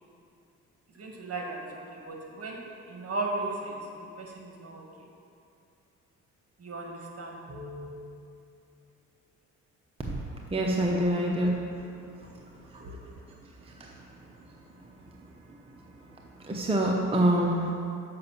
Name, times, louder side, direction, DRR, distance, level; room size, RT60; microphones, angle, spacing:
voice 1, 0.9-2.6 2.9-4.8 6.6-7.9 10.9-11.0 12.8-12.9, right 2 dB, 50° right, 0 dB, 1.7 m, -37 dB
voice 2, 10.5-11.6 12.7-12.8 13.7-13.9 16.4-17.7, right 1 dB, 20° right, -1 dB, 0.8 m, -26 dB
6.7 x 5.3 x 7.1 m, 2.5 s
cardioid pair, 90°, 30 cm